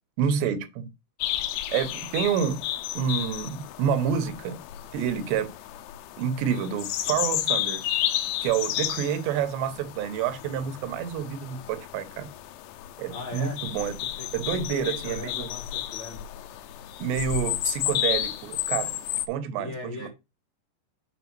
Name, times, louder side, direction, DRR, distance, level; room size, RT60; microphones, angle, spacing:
voice 1, 0.2-0.9 1.7-2.6 2.9-4.6 4.9-5.5 6.2-7.8 8.4-12.3 13.0-13.9 14.3-15.5 17.0-18.9 19.3-20.1, right 8 dB, 75° right, 2.9 m, -28 dB
sound 1, 1.2-19.3, left 13 dB, 85° left, 3.0 m, -32 dB
voice 2, 13.1-13.6 14.1-16.2 19.5-20.1, left 2 dB, 65° left, 1.2 m, -38 dB
7.0 x 3.3 x 5.9 m
omnidirectional pair, 5.3 m